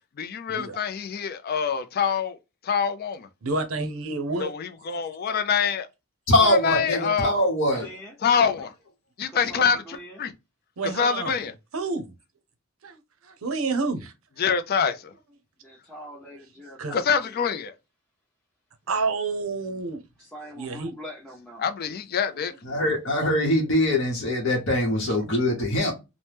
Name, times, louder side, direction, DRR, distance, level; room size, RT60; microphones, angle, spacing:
voice 1, 0.2-2.4 2.6-3.3 4.4-5.9 6.5-7.3 8.2-8.7 9.2-9.8 10.2-10.3 11.0-11.5 14.4-15.1 16.9-17.7 21.6-22.5, left 6 dB, 45° left, 0.4 m, -25 dB
voice 2, 3.4-4.5 10.8-11.4 11.7-12.1 12.8-14.1 16.8-17.0 18.9-20.0 20.6-20.9, right 3 dB, 70° right, 0.6 m, -29 dB
voice 3, 6.3-7.9 22.6-25.9, left 1 dB, 60° left, 0.9 m, -22 dB
voice 4, 7.7-8.1 9.3-10.2 15.6-17.6 20.2-21.6, equal, 5° left, 0.6 m, -43 dB
2.9 x 2.1 x 3.3 m
head